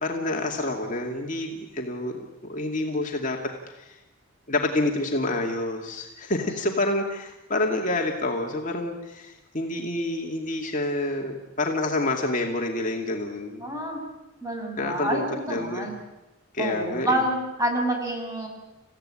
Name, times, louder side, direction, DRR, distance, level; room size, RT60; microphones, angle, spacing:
voice 1, 0.0-2.2 2.5-3.4 3.8-4.0 4.5-13.7 14.8-15.9 16.5-17.2, left 2 dB, 35° left, 1 dB, 2.4 m, -28 dB
voice 2, 6.4-6.7 13.6-14.0 14.4-16.0 16.6-18.5, right 1 dB, 15° right, 2 dB, 6.1 m, -28 dB
29.5 x 16.0 x 9.9 m, 1.0 s
head